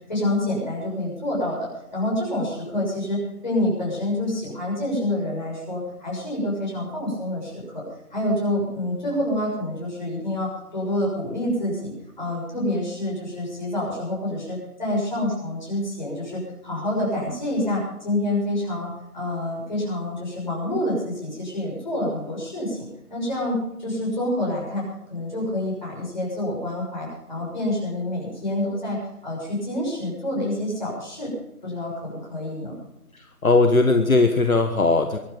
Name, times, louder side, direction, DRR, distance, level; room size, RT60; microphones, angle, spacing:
voice 1, 0.1-7.8 8.1-24.8 25.1-31.3 31.6-32.8, left 1 dB, 30° left, -5 dB, 6.7 m, -27 dB
voice 2, 33.4-35.2, left 3 dB, 60° left, 6 dB, 1.5 m, -18 dB
23.5 x 9.5 x 5.3 m, 0.87 s
figure-of-eight pair, 180°, 46 cm